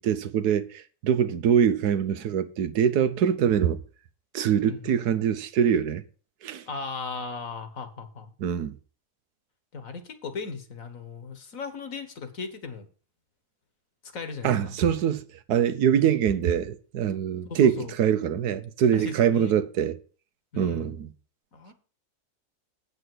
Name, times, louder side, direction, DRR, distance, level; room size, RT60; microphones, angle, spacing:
voice 1, 0.0-3.8 4.3-6.0 6.4-6.6 8.4-8.7 14.4-15.2 15.5-20.0 20.5-21.1, right 8 dB, 90° right, 1.4 m, -24 dB
voice 2, 6.7-8.3 9.7-12.9 14.0-14.7 17.5-17.9 18.9-19.5 20.5-21.0 21.5-21.7, left 4 dB, 60° left, 1.8 m, -37 dB
8.4 x 5.7 x 7.7 m
omnidirectional pair, 1.6 m